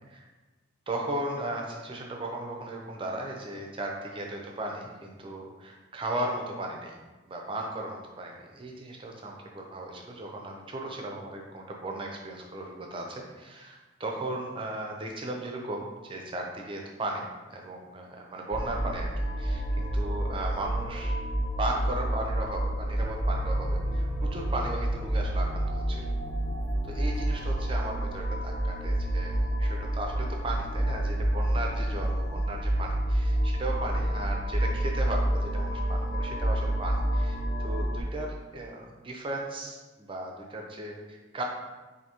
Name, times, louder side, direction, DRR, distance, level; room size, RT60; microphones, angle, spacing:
voice 1, 0.9-6.9 7.3-21.1 21.6-26.0 26.9-41.4, right 1 dB, 25° right, 0 dB, 0.5 m, -36 dB
sound 1, 18.5-38.0, right 1 dB, 45° left, 1.0 m, -29 dB
4.6 x 2.7 x 2.8 m, 1.2 s
head